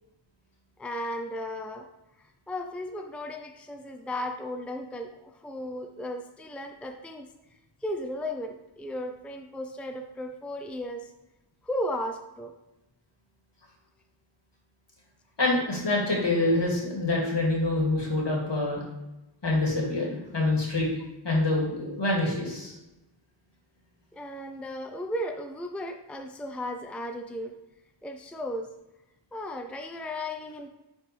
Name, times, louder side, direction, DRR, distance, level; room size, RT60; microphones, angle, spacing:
voice 1, 0.8-1.9 2.2-7.3 7.8-11.1 11.6-12.5 24.1-27.5 28.0-28.7 29.3-30.7, left 1 dB, 5° left, 5 dB, 0.5 m, -35 dB
voice 2, 15.4-18.8 19.4-20.9 21.2-22.7, left 2 dB, 65° left, -3 dB, 2.4 m, -26 dB
9.8 x 4.2 x 3.3 m, 0.95 s
wide cardioid pair, 60°, 46 cm